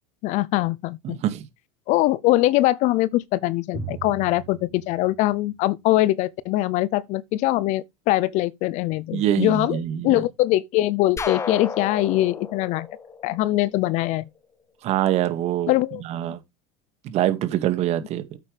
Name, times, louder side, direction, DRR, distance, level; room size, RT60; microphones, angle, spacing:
voice 1, 0.2-1.2 1.9-9.8 10.0-12.9 13.2-14.3 15.7-16.0, left 16 dB, 50° left, 0.6 m, -22 dB
voice 2, 1.0-1.5 9.1-10.2 14.8-15.7 16.0-16.4 17.0-18.4, right 12 dB, 45° right, 2.0 m, -24 dB
Drum, 3.7-6.1, right 5 dB, 30° right, 4.2 m, -39 dB
sound 1, 11.2-14.0, left 5 dB, 20° left, 1.0 m, -32 dB
9.2 x 8.5 x 3.4 m
supercardioid pair, 135°, 15 cm